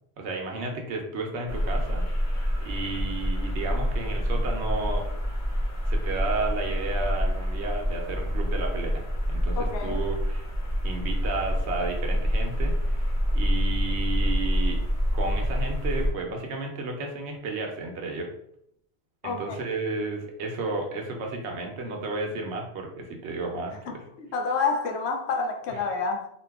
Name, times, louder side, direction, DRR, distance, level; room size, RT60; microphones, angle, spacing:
voice 1, 0.2-2.0 2.6-5.1 5.9-10.5 10.8-14.8 15.1-18.3 19.2-24.0, right 3 dB, 85° right, 1.0 m, -32 dB
sound 1, 1.5-16.1, equal, 20° left, 0.7 m, -27 dB
voice 2, 9.6-10.0 19.2-19.6 23.9-26.3, left 4 dB, 85° left, 0.8 m, -29 dB
2.7 x 2.3 x 3.4 m
omnidirectional pair, 1.1 m